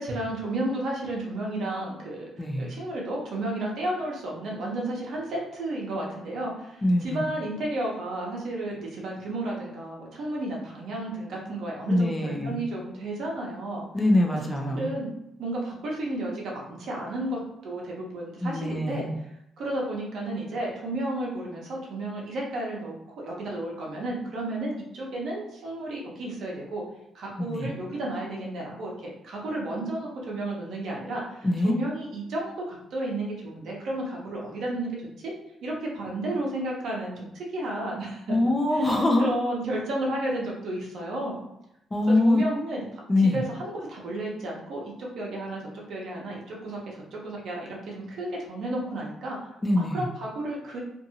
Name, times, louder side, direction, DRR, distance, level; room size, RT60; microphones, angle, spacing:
voice 1, 0.0-13.9 14.7-15.1 15.4-19.0 19.6-26.8 27.1-35.3 35.6-38.4 38.7-41.4 42.2-49.5 49.8-50.8, right 1 dB, 70° right, -2 dB, 0.9 m, -32 dB
voice 2, 2.4-2.7 6.8-7.2 11.9-12.6 13.9-14.9 18.4-19.1 27.4-27.7 31.4-31.7 38.3-39.3 41.9-42.4 43.1-43.4 49.6-50.0, left 1 dB, 15° left, 1 dB, 0.5 m, -23 dB
2.6 x 2.6 x 2.7 m, 0.82 s
cardioid pair, 90°, 0 cm